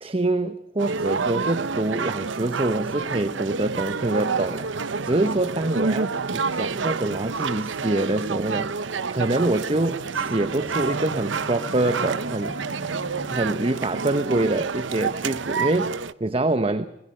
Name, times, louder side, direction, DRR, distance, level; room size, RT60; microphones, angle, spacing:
voice 1, 0.0-8.8 9.1-12.6 13.3-16.8, right 2 dB, 30° right, 0.9 m, -25 dB
sound 1, 0.8-16.1, right 5 dB, 80° right, 0.8 m, -28 dB
Bowed string instrument, 9.4-14.8, equal, 60° left, 7.1 m, -42 dB
26.5 x 20.5 x 6.6 m
head